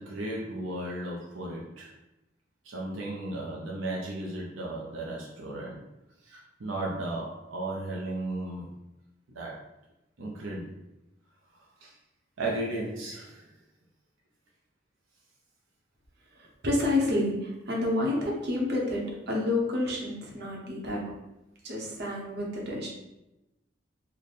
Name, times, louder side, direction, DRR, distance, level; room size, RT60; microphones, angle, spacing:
voice 1, 0.0-1.9 2.6-5.8 6.2-8.7 9.3-9.6 10.2-10.7 11.6-12.0 12.4-13.5, right 2 dB, 85° right, -3 dB, 0.6 m, -35 dB
voice 2, 16.3-21.1 21.6-22.9, left 2 dB, 60° right, -2 dB, 0.9 m, -29 dB
3.3 x 2.2 x 4.0 m, 0.94 s
head